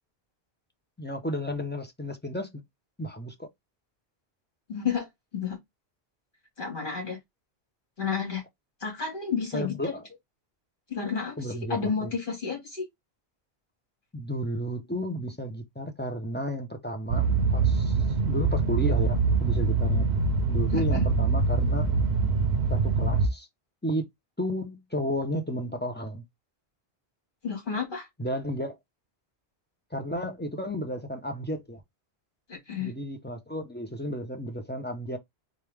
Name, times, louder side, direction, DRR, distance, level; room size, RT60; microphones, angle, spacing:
voice 1, 1.0-2.5 3.0-3.5 9.5-10.0 11.4-12.1 14.1-17.3 17.5-20.1 20.5-22.0 22.7-23.5 23.8-24.1 24.4-26.2 28.2-28.8 29.9-31.8 32.8-35.2, equal, 10° left, 0.7 m, -32 dB
voice 2, 4.7-5.1 5.3-5.6 6.6-7.2 8.0-8.4 8.8-10.0 10.9-12.9 20.7-21.1 27.4-28.1 32.5-32.9, left 6 dB, 50° left, 2.3 m, -31 dB
sound 1, 17.1-23.3, right 4 dB, 80° right, 1.0 m, -24 dB
3.7 x 3.3 x 3.5 m
omnidirectional pair, 1.1 m